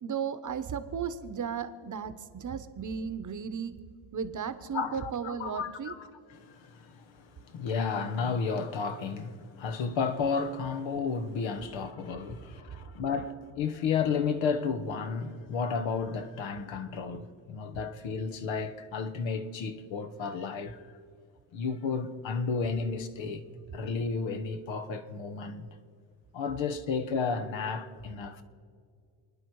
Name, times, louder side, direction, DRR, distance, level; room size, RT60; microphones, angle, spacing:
voice 1, 0.0-3.8 4.1-5.9, right 7 dB, 40° right, 1.0 m, -35 dB
voice 2, 4.7-20.8 21.5-23.4 23.7-25.7 26.3-28.4, left 5 dB, 75° left, 1.3 m, -32 dB
29.0 x 9.9 x 4.7 m
cardioid pair, 95°, 46 cm